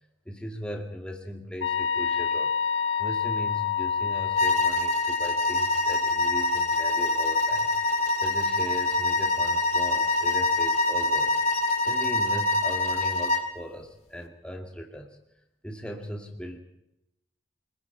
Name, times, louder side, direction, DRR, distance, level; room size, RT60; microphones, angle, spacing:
voice 1, 0.3-2.5 3.0-7.7 8.2-11.4 11.9-15.2 15.6-16.6, equal, 5° left, 2 dB, 2.2 m, -38 dB
sound 1, 1.6-4.9, left 7 dB, 80° left, 1.4 m, -27 dB
sound 2, 4.4-13.5, left 2 dB, 35° left, 2.1 m, -25 dB
29.5 x 21.0 x 4.7 m, 0.85 s
head